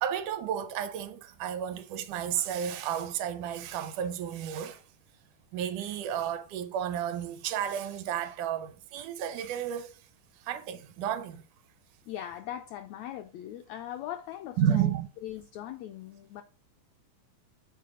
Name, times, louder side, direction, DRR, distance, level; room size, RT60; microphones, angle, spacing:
voice 1, 0.0-4.8 5.5-10.0 10.5-11.4 14.6-15.1, right 9 dB, 80° right, 2.1 m, -32 dB
voice 2, 12.1-14.9 15.2-16.4, left 11 dB, 85° left, 1.5 m, -40 dB
6.8 x 4.5 x 3.7 m
omnidirectional pair, 3.7 m